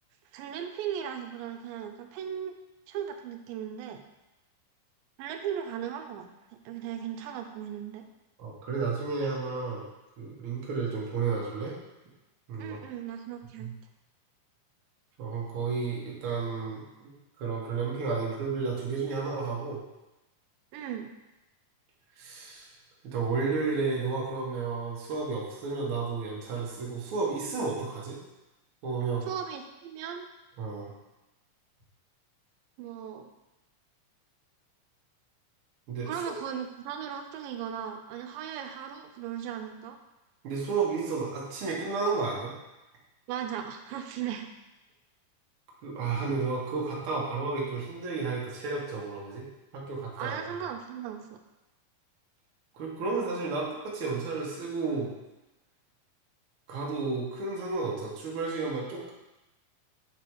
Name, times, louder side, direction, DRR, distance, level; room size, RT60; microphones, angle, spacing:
voice 1, 0.3-2.6 2.9-4.0 5.2-8.1 12.6-13.7 20.7-21.1 29.3-30.3 32.8-33.3 36.1-40.0 43.3-44.5 50.2-51.4, right 9 dB, 85° right, 5 dB, 2.3 m, -37 dB
voice 2, 8.4-9.9 10.2-11.7 12.5-12.8 13.6-13.7 15.2-17.1 17.4-19.8 22.2-22.7 23.0-28.2 28.8-29.3 30.6-30.9 35.9-36.1 40.4-42.5 45.8-49.4 49.7-50.4 52.7-55.1 56.7-59.1, right 4 dB, 60° right, -3 dB, 1.4 m, -32 dB
6.8 x 3.3 x 4.5 m, 1.0 s
omnidirectional pair, 4.0 m